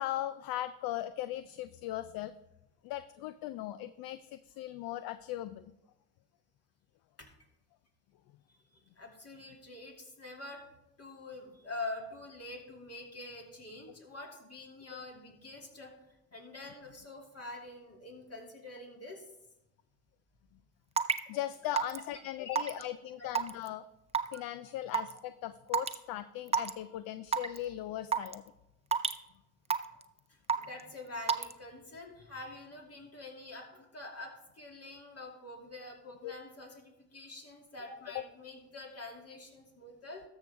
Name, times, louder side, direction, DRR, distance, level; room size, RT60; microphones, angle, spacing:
voice 1, 0.0-2.3 2.8-5.6 14.9-15.0 21.3-23.8 24.3-28.4 36.2-36.3 38.1-38.2, left 13 dB, 65° left, 14 dB, 0.5 m, -38 dB
voice 2, 8.5-10.6 11.0-19.3 21.7-21.8 22.1-22.6 23.2-23.3 24.3-24.4 30.3-40.2, left 2 dB, 40° left, 0 dB, 2.7 m, -46 dB
Raindrop / Water tap faucet / Drip, 21.0-21.2 21.8-22.0 22.6-22.8 23.3-23.7 24.1-24.3 24.9-25.1 25.7-25.9 26.5-26.7 27.3-27.6 28.1-28.3 28.9-29.2 29.7-30.0 30.5-30.8 31.3-31.5, right 6 dB, 15° right, 0.6 m, -28 dB
13.5 x 6.5 x 3.5 m, 0.89 s
hypercardioid pair, 55°, 39 cm